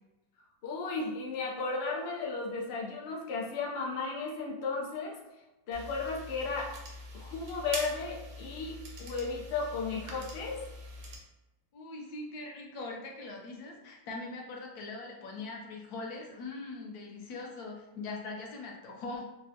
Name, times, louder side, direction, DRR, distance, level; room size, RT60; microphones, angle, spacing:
voice 1, 0.6-5.2 5.7-6.7 7.1-10.6, left 4 dB, 90° left, -1 dB, 0.5 m, -34 dB
sound 1, 5.7-11.2, equal, 65° right, 0.9 m, -44 dB
voice 2, 11.7-19.3, left 3 dB, 70° left, 0 dB, 1.1 m, -41 dB
3.6 x 2.1 x 2.6 m, 1.0 s
omnidirectional pair, 1.8 m